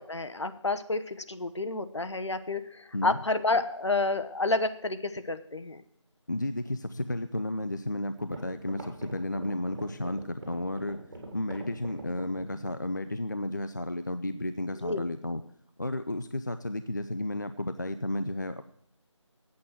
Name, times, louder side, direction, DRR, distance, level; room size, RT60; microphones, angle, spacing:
voice 1, 0.0-5.8 14.8-15.1, left 3 dB, 65° left, 11 dB, 0.9 m, -30 dB
voice 2, 2.9-3.2 6.3-11.0 11.3-15.4 15.8-18.6, left 1 dB, 40° left, 10 dB, 0.4 m, -33 dB
sound 1, 7.7-7.8 8.2-12.8, right 2 dB, 40° right, 3.8 m, -43 dB
8.5 x 8.0 x 7.4 m, 0.71 s
figure-of-eight pair, 170°, 16 cm